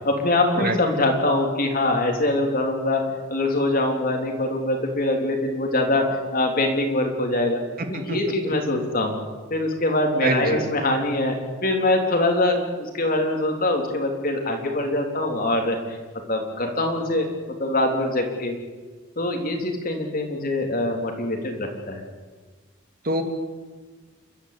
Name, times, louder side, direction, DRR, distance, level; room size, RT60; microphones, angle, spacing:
voice 1, 0.0-7.6 7.9-9.2 9.5-15.8 16.3-17.3 17.6-18.6 19.2-22.0, left 2 dB, 45° left, 2 dB, 3.8 m, -23 dB
voice 2, 7.8-8.2 10.2-10.6 23.0-23.2, right 2 dB, 45° right, 5 dB, 2.6 m, -25 dB
29.5 x 13.0 x 8.6 m, 1.4 s
head